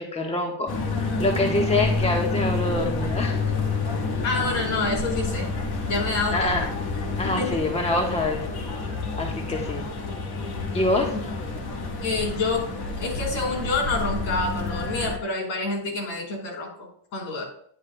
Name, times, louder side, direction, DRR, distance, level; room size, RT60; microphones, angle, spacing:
voice 1, 0.0-3.4 6.3-6.7 7.2-8.4 9.2-9.9 10.7-11.2, left 2 dB, 15° left, 2 dB, 1.4 m, -25 dB
sound 1, 0.7-15.2, left 3 dB, 50° left, 1.6 m, -29 dB
voice 2, 4.2-5.5 5.8-6.7 7.2-7.6 11.1-11.2 12.0-12.7 13.0-17.4, left 3 dB, 70° left, -1 dB, 4.1 m, -28 dB
11.0 x 8.7 x 2.3 m, 0.62 s
supercardioid pair, 90°, 48 cm